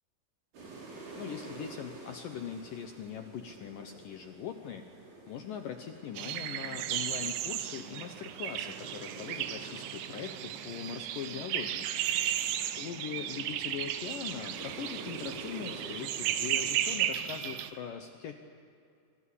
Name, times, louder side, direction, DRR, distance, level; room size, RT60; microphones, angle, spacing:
sound 1, 0.5-17.7, right 2 dB, 60° right, 7.6 m, -49 dB
voice 1, 1.2-5.0 5.3-11.9 12.8-18.3, left 8 dB, 70° left, 6 dB, 2.1 m, -41 dB
sound 2, 6.2-17.7, right 11 dB, 90° right, 3.5 m, -35 dB
25.5 x 25.0 x 8.5 m, 2.5 s
omnidirectional pair, 5.2 m